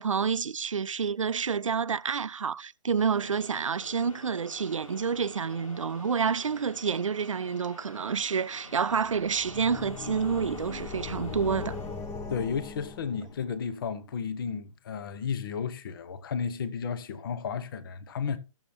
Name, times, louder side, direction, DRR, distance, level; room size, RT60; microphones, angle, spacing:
voice 1, 0.0-11.8, right 6 dB, 70° right, 0.5 m, -29 dB
sound 1, 3.0-13.2, left 1 dB, 80° left, 2.5 m, -49 dB
sound 2, 8.9-13.5, left 4 dB, 15° left, 0.8 m, -39 dB
voice 2, 12.3-18.4, left 6 dB, 40° left, 0.8 m, -33 dB
15.0 x 7.2 x 2.8 m
figure-of-eight pair, 130°, 17 cm